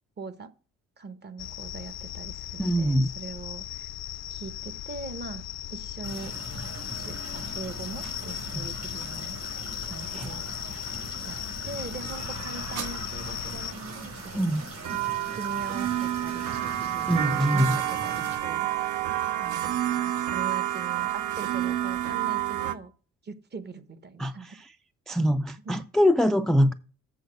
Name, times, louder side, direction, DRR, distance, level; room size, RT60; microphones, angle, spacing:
voice 1, 0.2-0.5 1.0-3.9 4.3-5.4 5.7-6.3 7.0-9.4 9.8-10.5 10.9-11.4 11.6-14.6 15.3-18.7 19.4-22.9 23.2-24.6 25.6-25.8, right 3 dB, 35° right, 0.9 m, -41 dB
sound 1, 1.4-13.7, left 12 dB, 60° left, 0.5 m, -37 dB
voice 2, 2.6-3.1 10.1-10.3 14.3-14.6 17.1-17.7 24.2-24.3 25.1-26.7, equal, ahead, 0.3 m, -23 dB
sound 2, 6.0-18.4, right 2 dB, 60° right, 5.0 m, -41 dB
sound 3, 8.1-8.4 9.0-9.1 9.9-10.3 10.9-11.0 11.8-12.2 12.7-12.9 13.6-14.1 14.6-22.7, right 12 dB, 75° right, 0.8 m, -29 dB
8.1 x 4.2 x 6.3 m
cardioid pair, 90°, 30 cm